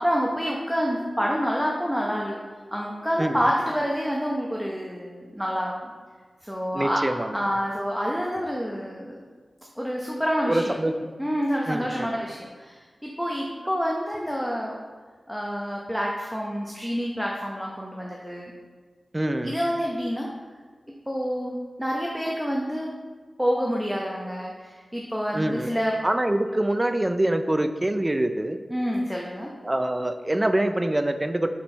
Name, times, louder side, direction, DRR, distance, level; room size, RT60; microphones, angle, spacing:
voice 1, 0.0-2.4 2.7-5.7 6.4-7.0 7.3-9.1 9.8-10.8 11.2-14.7 15.3-18.5 19.4-20.3 21.1-22.9 23.4-26.0 28.7-29.5, equal, ahead, -2 dB, 0.9 m, -27 dB
voice 2, 6.7-7.3 10.5-10.9 11.7-12.1 19.1-19.5 25.3-25.7 26.0-28.6 29.6-31.5, right 1 dB, 20° right, 8 dB, 0.5 m, -24 dB
7.3 x 4.5 x 5.4 m, 1.5 s
wide cardioid pair, 75°, 0 cm